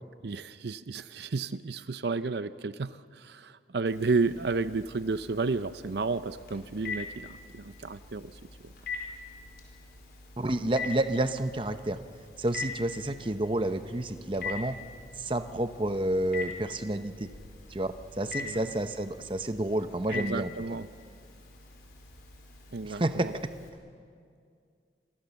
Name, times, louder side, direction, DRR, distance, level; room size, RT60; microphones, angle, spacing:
voice 1, 0.2-8.4 18.4-18.6 20.1-20.9 22.7-23.3, right 4 dB, 70° right, 13 dB, 0.6 m, -32 dB
Telephone, 3.9-23.7, left 4 dB, 60° left, 4.9 m, -43 dB
voice 2, 10.4-12.0 12.4-14.8 15.2-17.3 17.7-20.5 22.8-23.3, right 1 dB, 30° right, 9 dB, 0.8 m, -30 dB
28.5 x 23.5 x 7.1 m, 2.3 s
head